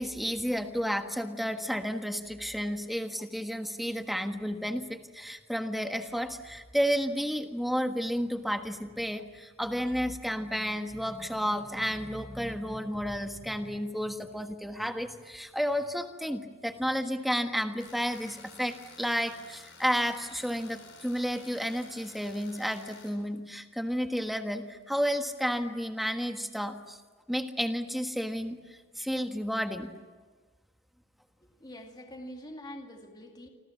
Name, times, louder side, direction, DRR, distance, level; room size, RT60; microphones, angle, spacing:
voice 1, 0.0-27.0 27.3-29.9, equal, ahead, 6 dB, 1.4 m, -32 dB
Tools, 17.8-23.1, left 5 dB, 60° left, 7.3 m, -52 dB
voice 2, 31.4-33.5, equal, 20° left, 3 dB, 2.4 m, -45 dB
28.0 x 26.0 x 7.3 m, 1.4 s
head